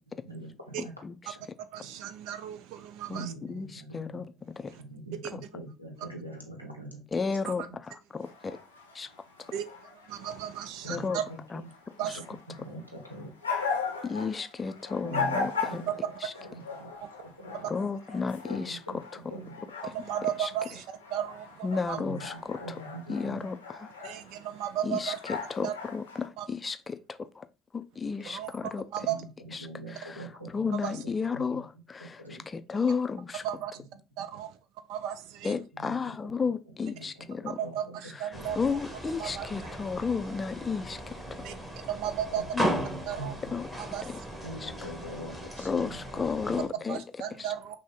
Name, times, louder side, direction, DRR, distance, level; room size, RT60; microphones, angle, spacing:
voice 1, 0.1-0.9 1.3-1.4 3.1-7.1 7.7-7.8 10.8-11.7 12.0-12.1 12.5-13.3 15.0-16.1 16.4-17.8 18.5-19.6 22.0-23.5 29.0-32.5 33.8-33.9 35.7-36.1 36.4-36.5 36.9-38.0 38.3-38.7 42.3-43.6 44.4-46.7, right 1 dB, 90° right, 0.9 m, -44 dB
voice 2, 0.8-1.2 3.1-3.2 3.5-3.7 3.9-4.3 4.6-4.7 5.3-5.4 7.1-7.7 8.1-8.6 8.9-9.1 10.9-11.2 11.5-11.6 12.1-12.2 14.0-15.8 16.2-16.3 17.7-18.8 20.4-20.5 21.6-22.6 23.1-23.9 24.8-27.5 27.7-28.8 29.5-29.7 30.0-30.2 30.5-32.2 32.5-33.4 35.4-37.6 38.6-41.5 42.5-42.7 43.5-43.7 44.1-44.2 44.6-44.7 45.6-47.0 47.4-47.5, left 5 dB, 25° left, 0.4 m, -32 dB
voice 3, 1.7-3.3 4.7-4.8 5.2-5.3 7.4-7.5 9.5-9.6 10.1-11.2 12.0-12.2 17.0-17.1 17.6-17.7 19.8-22.0 24.0-25.2 25.6-25.7 26.4-26.5 28.3-29.2 30.8-31.0 33.4-33.7 34.2-34.6 34.9-35.5 37.5-38.8 39.2-39.7 41.4-41.5 41.9-42.4 43.1-43.3 43.8-44.2 46.9-47.8, right 10 dB, 60° right, 0.4 m, -35 dB
sound 1, 8.2-26.3, left 5 dB, 85° left, 0.7 m, -39 dB
sound 2, 38.3-46.7, equal, 15° right, 1.3 m, -37 dB
6.1 x 2.1 x 3.7 m
figure-of-eight pair, 55°, 0 cm